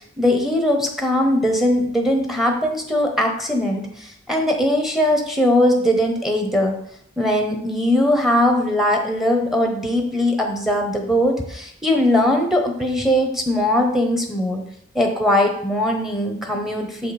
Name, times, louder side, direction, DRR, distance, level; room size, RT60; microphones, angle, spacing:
voice 1, 0.2-6.8 7.2-14.6 14.9-17.1, left 1 dB, ahead, 3 dB, 0.9 m, -20 dB
7.2 x 5.1 x 4.1 m, 0.66 s
head